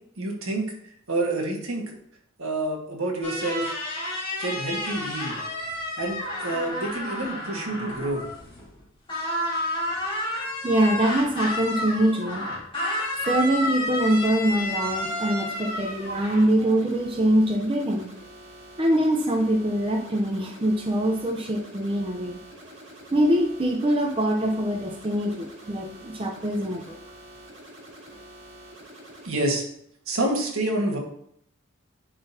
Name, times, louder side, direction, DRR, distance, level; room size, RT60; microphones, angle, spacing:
voice 1, 0.2-0.7 1.1-2.0 2.4-3.7 4.4-5.4 6.0-8.2 29.2-29.6 30.1-31.0, right 2 dB, 85° right, -1 dB, 1.5 m, -28 dB
sound 1, 3.2-8.8 9.1-16.5, left 1 dB, 25° left, 1.8 m, -31 dB
voice 2, 10.6-12.4 13.3-18.1 18.8-22.4 23.1-26.9, right 1 dB, 25° right, 1 dB, 0.6 m, -23 dB
sound 2, 14.4-29.3, right 1 dB, 65° right, 1.8 m, -46 dB
10.5 x 3.9 x 2.7 m, 0.70 s
head